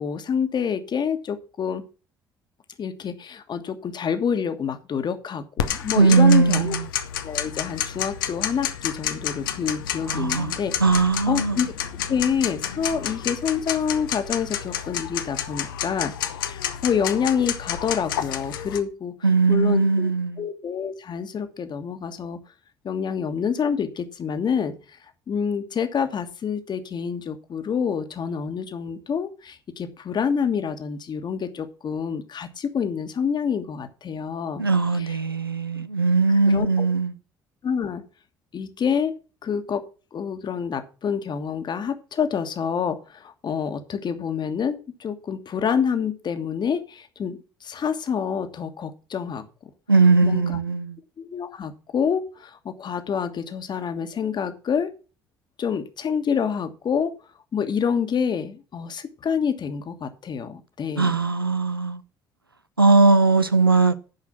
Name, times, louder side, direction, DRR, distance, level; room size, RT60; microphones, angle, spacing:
voice 1, 0.0-1.8 2.8-6.8 7.2-10.7 11.3-11.7 12.1-19.1 19.5-20.1 20.4-22.4 22.8-25.0 25.3-34.6 35.0-35.2 35.8-35.9 36.5-36.9 37.6-38.0 38.5-39.1 39.4-49.4 50.2-50.6 51.2-54.9 55.6-57.1 57.5-61.1, left 7 dB, 40° left, 1.5 m, -27 dB
Tick-tock, 5.6-18.8, left 10 dB, 70° left, 0.8 m, -30 dB
voice 2, 6.0-6.8 10.1-11.6 19.2-20.4 34.6-37.1 49.9-50.9 61.0-62.0 62.8-63.9, right 4 dB, 90° right, 0.5 m, -19 dB
11.0 x 4.9 x 7.0 m
figure-of-eight pair, 50°, 12 cm